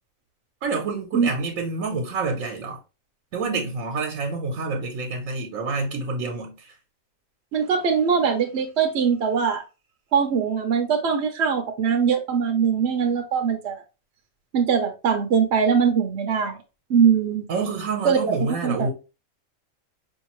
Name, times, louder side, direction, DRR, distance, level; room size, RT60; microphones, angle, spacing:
voice 1, 0.6-2.8 3.3-6.7 17.5-18.9, right 4 dB, 85° right, 1.2 m, -28 dB
voice 2, 7.5-9.6 10.1-13.8 14.5-16.6 16.9-17.5 18.0-18.9, right 6 dB, 60° right, 0.9 m, -22 dB
5.1 x 2.7 x 2.9 m
omnidirectional pair, 1.4 m